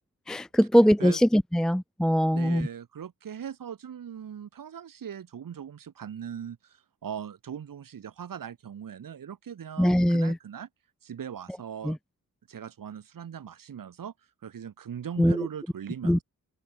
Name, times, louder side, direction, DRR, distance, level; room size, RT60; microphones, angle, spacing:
voice 1, 0.3-2.7 9.8-10.3 11.9-12.0 15.2-15.3 16.1-16.2, equal, ahead, 0.6 m, -22 dB
voice 2, 0.8-1.2 2.3-10.7 11.0-12.0 12.5-14.1 14.4-16.2, right 8 dB, 75° right, 2.8 m, -40 dB
open air
wide cardioid pair, 115°, 34 cm